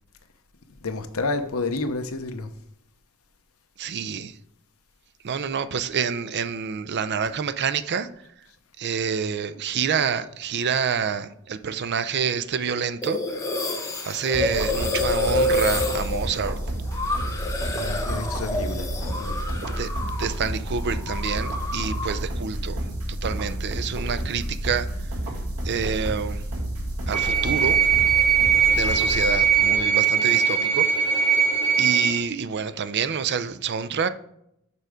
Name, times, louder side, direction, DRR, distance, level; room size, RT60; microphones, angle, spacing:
voice 1, 0.8-2.5 17.7-19.4, left 3 dB, 70° left, 0.8 m, -30 dB
voice 2, 3.8-4.3 5.2-8.1 8.8-13.2 14.0-16.6 19.7-19.9 20.2-22.8 23.2-24.9 25.6-26.5 27.1-27.8 28.7-30.9 31.8-34.1, right 6 dB, 50° right, 0.5 m, -27 dB
sound 1, 13.0-20.4 20.7-22.2, left 2 dB, 15° left, 0.9 m, -28 dB
sound 2, 14.3-29.8, right 1 dB, 85° right, 2.1 m, -30 dB
sound 3, 27.1-32.2, right 7 dB, 35° right, 3.1 m, -20 dB
6.8 x 4.7 x 5.0 m
head